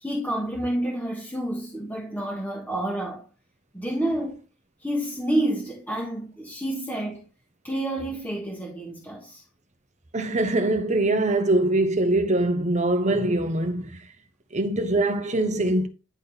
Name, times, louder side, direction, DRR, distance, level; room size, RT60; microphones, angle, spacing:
voice 1, 0.0-3.3 3.7-4.4 4.8-7.2 7.6-9.4, right 1 dB, 10° left, 1.5 m, -29 dB
voice 2, 10.1-14.0 14.5-15.9, right 2 dB, 30° right, 1.0 m, -23 dB
10.5 x 3.8 x 4.0 m
head